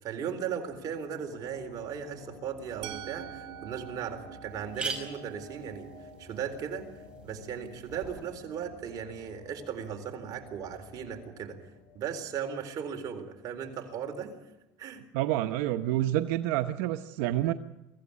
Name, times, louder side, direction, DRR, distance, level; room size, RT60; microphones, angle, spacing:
voice 1, 0.0-5.9 6.2-6.9 7.2-14.4 14.8-15.0, right 7 dB, 45° right, 4 dB, 4.0 m, -37 dB
sound 1, 0.6-13.2, left 3 dB, 70° left, 6.2 m, -52 dB
Musical instrument, 2.8-8.7, right 13 dB, 70° right, 1.7 m, -47 dB
sound 2, 3.2-3.3 3.8-3.9 4.1-4.2 4.5-8.3, right 4 dB, 10° right, 5.1 m, -42 dB
voice 2, 15.1-17.5, right 14 dB, 85° right, 8 dB, 0.9 m, -28 dB
24.0 x 15.5 x 8.6 m, 0.98 s
cardioid pair, 130°, 8 cm